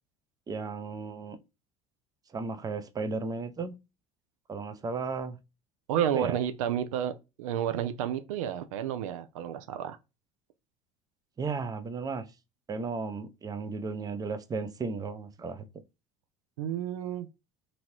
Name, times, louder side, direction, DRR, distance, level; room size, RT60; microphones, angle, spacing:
voice 1, 0.5-1.4 2.3-3.7 4.5-5.4 6.1-6.3 11.4-12.3 12.7-15.7, right 4 dB, 20° right, 0.5 m, -34 dB
voice 2, 5.9-7.1 7.4-10.0 16.6-17.3, right 9 dB, 85° right, 0.4 m, -30 dB
2.8 x 2.7 x 2.9 m
hypercardioid pair, 80°, 17 cm